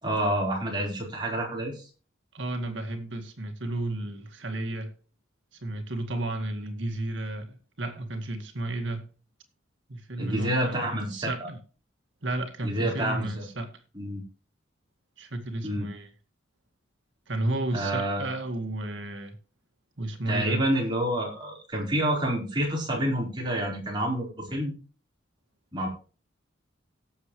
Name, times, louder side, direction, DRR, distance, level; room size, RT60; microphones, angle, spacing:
voice 1, 0.0-1.9 10.2-11.5 12.6-13.5 13.9-14.2 15.6-15.9 17.7-18.3 20.3-24.7 25.7-25.9, right 1 dB, 25° right, 4.4 m, -28 dB
voice 2, 2.3-4.9 5.5-9.1 9.9-11.6 12.2-13.7 15.2-16.1 17.3-19.4 20.0-20.6, right 2 dB, 75° right, 2.1 m, -33 dB
17.5 x 7.3 x 3.2 m
head